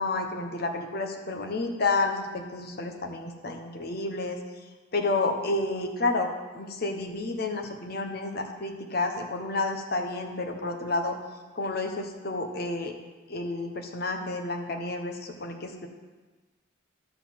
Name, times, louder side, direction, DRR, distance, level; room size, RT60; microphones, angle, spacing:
voice 1, 0.0-4.4 4.9-11.2 11.5-12.9 13.3-15.9, left 3 dB, 50° left, 4 dB, 1.0 m, -30 dB
12.0 x 4.1 x 7.3 m, 1.3 s
head